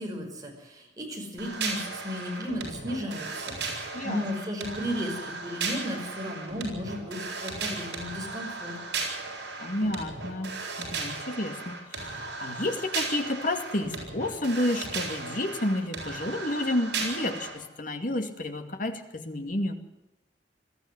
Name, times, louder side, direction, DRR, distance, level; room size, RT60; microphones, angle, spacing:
voice 1, 0.0-8.8, equal, 20° right, 0 dB, 5.7 m, -35 dB
sound 1, 1.4-17.5, right 4 dB, 65° right, 7.5 m, -36 dB
voice 2, 9.6-19.7, left 1 dB, 50° left, 7 dB, 2.3 m, -30 dB
21.5 x 13.5 x 9.6 m, 0.95 s
head